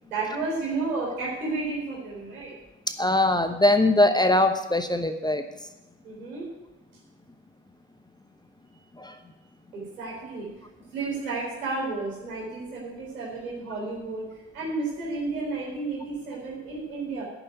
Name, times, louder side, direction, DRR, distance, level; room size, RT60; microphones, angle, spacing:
voice 1, 0.0-2.5 6.0-6.5 9.7-10.5 10.9-14.2 14.5-17.2, right 3 dB, 80° right, -4 dB, 4.0 m, -32 dB
voice 2, 3.0-5.4 9.0-9.2, left 1 dB, 10° left, 8 dB, 1.0 m, -21 dB
9.9 x 6.9 x 9.2 m, 1.0 s
figure-of-eight pair, 50°, 43 cm